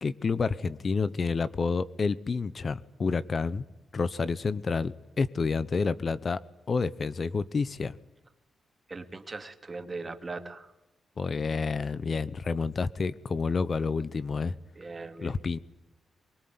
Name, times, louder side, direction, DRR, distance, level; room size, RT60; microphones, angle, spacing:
voice 1, 0.0-3.6 3.9-6.4 6.7-7.9 11.2-14.6 15.2-15.6, left 4 dB, 45° left, 16 dB, 1.0 m, -29 dB
voice 2, 8.9-10.7 14.8-15.4, right 3 dB, 30° right, 8 dB, 2.7 m, -39 dB
24.0 x 22.0 x 9.7 m, 1.0 s
cardioid pair, 90°, 0 cm